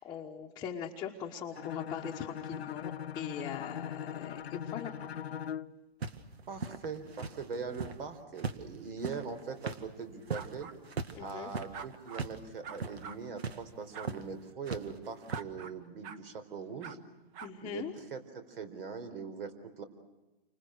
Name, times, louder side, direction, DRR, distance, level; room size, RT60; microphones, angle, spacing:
voice 1, 0.0-4.9 11.1-11.5 17.4-17.9, left 8 dB, 15° left, -1 dB, 1.2 m, -41 dB
Bowed string instrument, 1.5-5.8, left 8 dB, 85° left, 0.9 m, -40 dB
sound 1, 6.0-8.0 8.3-12.4 12.7-13.0 13.4-13.6 14.0-14.3 14.7-15.4, right 5 dB, 85° right, 1.9 m, -39 dB
voice 2, 6.5-10.7 11.2-17.0 17.6-19.8, right 5 dB, 65° right, 10 dB, 4.4 m, -41 dB
sound 2, 10.3-10.7 11.7-12.2 12.6-13.2 13.9-14.1 15.3-15.8 16.0-16.2 16.8-17.0 17.3-17.5, right 7 dB, 25° right, 1.2 m, -44 dB
29.5 x 25.5 x 6.5 m, 1.1 s
hypercardioid pair, 145°, 31 cm